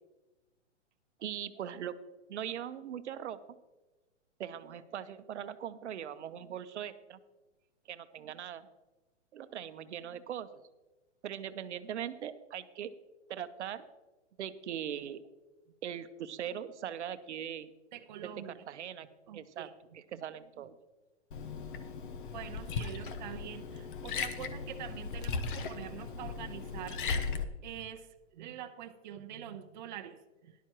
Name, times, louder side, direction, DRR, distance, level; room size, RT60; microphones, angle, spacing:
voice 1, 1.2-2.0 2.3-3.6 4.4-7.2 7.9-8.7 9.3-10.5 11.2-12.9 13.3-13.9 14.4-15.2 15.8-17.7 18.2-18.3 18.7-19.1 19.3-19.7 19.9-20.8, right 9 dB, 70° right, 12 dB, 0.8 m, -40 dB
voice 2, 17.9-18.6 19.3-19.7 22.3-27.0 27.6-30.7, right 10 dB, 40° right, 6 dB, 0.6 m, -45 dB
Liquid, 21.3-27.4, left 5 dB, 45° left, 0.9 m, -37 dB
13.0 x 11.0 x 3.0 m, 1.1 s
hypercardioid pair, 160°, 36 cm